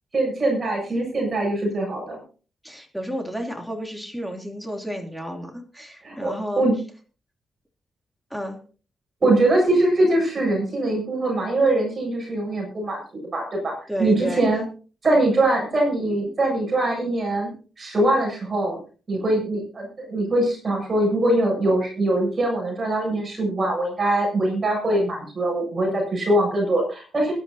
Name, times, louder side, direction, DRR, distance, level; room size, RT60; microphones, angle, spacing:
voice 1, 0.1-2.2 6.0-6.7 9.2-13.0 13.3-13.7 14.0-14.6 15.0-17.5 17.8-18.8 19.1-27.3, right 1 dB, 35° right, 0 dB, 7.9 m, -22 dB
voice 2, 2.6-6.7 8.3-8.6 13.9-14.4, equal, ahead, 2 dB, 3.0 m, -31 dB
21.5 x 11.5 x 2.8 m, 0.37 s
cardioid pair, 115°, 0 cm